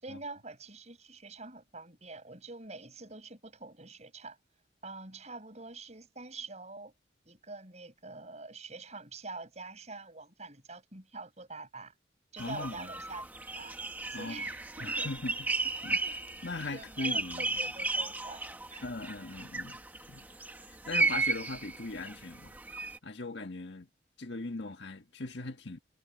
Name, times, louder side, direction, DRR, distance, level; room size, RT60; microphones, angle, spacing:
voice 1, 0.0-4.4 4.8-6.9 7.2-11.9 12.3-13.2 13.5-13.7 14.1-15.1 16.0-16.1 16.7-18.4 18.7-18.8, right 3 dB, 35° right, 6.5 m, -46 dB
voice 2, 12.4-12.9 14.1-14.4 14.8-15.5 15.8-16.0 16.4-17.5 18.8-19.8 20.1-20.2 20.7-22.6 23.0-23.9 24.2-25.8, left 2 dB, 65° left, 1.6 m, -39 dB
sound 1, 12.4-23.0, right 3 dB, 10° right, 1.3 m, -35 dB
head